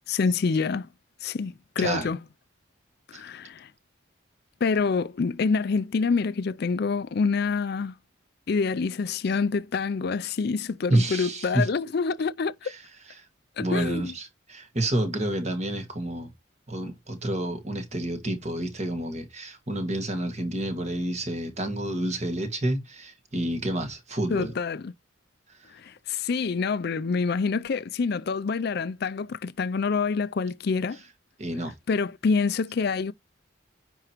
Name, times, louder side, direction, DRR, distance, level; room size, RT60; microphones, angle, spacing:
voice 1, 0.1-0.9 1.2-2.2 3.1-3.7 4.6-7.9 8.5-12.7 13.6-14.1 24.3-24.9 25.7-31.0 31.9-33.1, left 5 dB, 50° left, 0.4 m, -27 dB
voice 2, 10.9-11.7 12.6-12.8 13.2-13.3 13.6-16.3 16.7-24.5 25.6-25.7 31.4-31.7, right 1 dB, 35° right, 1.5 m, -29 dB
9.8 x 4.5 x 3.0 m
head